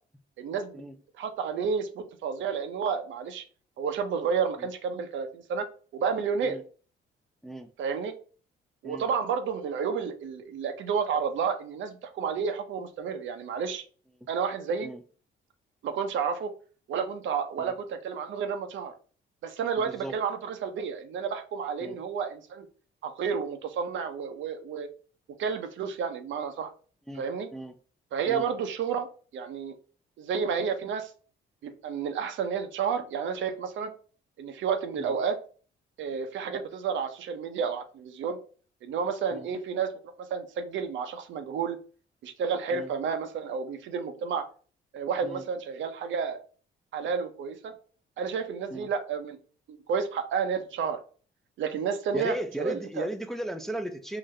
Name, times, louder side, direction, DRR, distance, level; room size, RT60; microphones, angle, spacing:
voice 1, 0.4-0.8 1.2-3.4 3.8-5.6 5.9-6.6 7.8-8.1 8.8-13.8 14.3-14.9 15.8-16.5 16.9-18.9 19.4-22.7 23.0-24.9 25.4-26.7 27.2-27.5 28.1-29.1 29.3-29.8 30.2-31.1 31.6-33.9 34.4-35.4 36.0-38.4 38.8-39.9 40.2-41.8 42.2-44.4 44.9-46.4 46.9-47.7 48.2-49.4 49.7-51.0 51.6-53.1, right 6 dB, 75° right, 0.7 m, -31 dB
voice 2, 19.8-20.2 21.8-22.0 27.1-27.3 27.5-27.7 28.3-28.5 35.0-35.2 39.3-39.5 42.7-42.9 45.2-45.4 48.7-48.9 52.1-54.2, right 1 dB, ahead, 0.5 m, -36 dB
3.8 x 2.6 x 3.2 m
cardioid pair, 90°, 20 cm